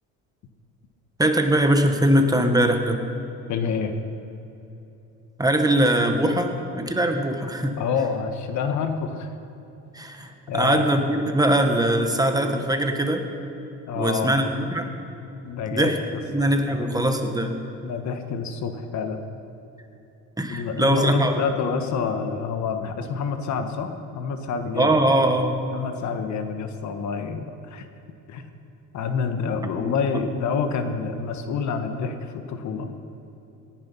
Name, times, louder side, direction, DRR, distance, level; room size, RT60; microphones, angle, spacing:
voice 1, 1.2-3.0 5.4-7.8 9.9-13.2 14.0-14.9 15.7-16.0 16.3-17.6 20.4-21.3 24.8-25.6 29.8-29.9, right 1 dB, 10° right, 5 dB, 1.3 m, -21 dB
voice 2, 3.5-3.9 7.8-9.3 10.5-10.9 13.9-14.4 15.4-16.2 16.6-17.0 17.8-19.2 20.5-25.0 25.7-27.9 28.3-28.4 28.9-32.9, left 6 dB, 65° left, 7 dB, 1.4 m, -28 dB
18.0 x 10.5 x 5.6 m, 2.9 s
cardioid pair, 110°, 31 cm